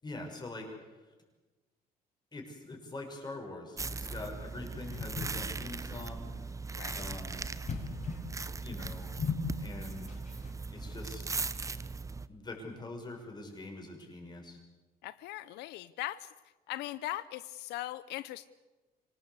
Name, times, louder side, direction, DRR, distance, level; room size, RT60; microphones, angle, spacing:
voice 1, 0.0-0.7 2.3-6.3 6.9-7.5 8.6-9.1 9.6-10.2 10.7-11.4 12.3-14.6, left 2 dB, 25° left, 2 dB, 6.2 m, -44 dB
sound 1, 3.8-12.3, right 4 dB, 20° right, 0.9 m, -39 dB
sound 2, 4.2-10.5, left 5 dB, 45° left, 5.7 m, -40 dB
voice 2, 15.0-16.3 16.7-18.5, left 15 dB, 85° left, 16 dB, 0.7 m, -39 dB
25.0 x 19.0 x 8.3 m, 1.2 s
cardioid pair, 110°, 17 cm